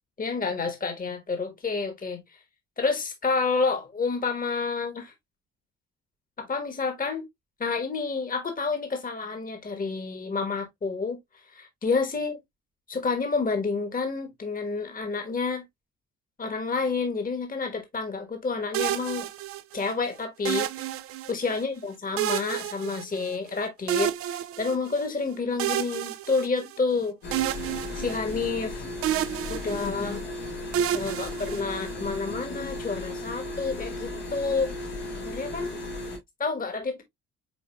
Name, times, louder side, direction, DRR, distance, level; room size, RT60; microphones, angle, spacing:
voice 1, 0.2-2.2 2.8-5.1 6.4-7.2 7.6-11.2 11.5-12.4 12.9-15.6 16.4-19.3 19.7-20.9 21.3-27.2 27.9-28.8 29.5-30.2 30.9-34.7 35.1-35.8 36.4-37.0, left 4 dB, 20° left, 1.2 m, -29 dB
sound 1, 18.7-19.9 20.5-21.6 22.2-23.5 23.9-25.1 25.6-27.0 27.3-28.7 29.0-30.2 30.7-32.1, right 12 dB, 40° right, 0.4 m, -30 dB
sound 2, 27.2-36.2, left 1 dB, 75° left, 2.0 m, -36 dB
5.1 x 4.3 x 2.2 m
figure-of-eight pair, 45°, 37 cm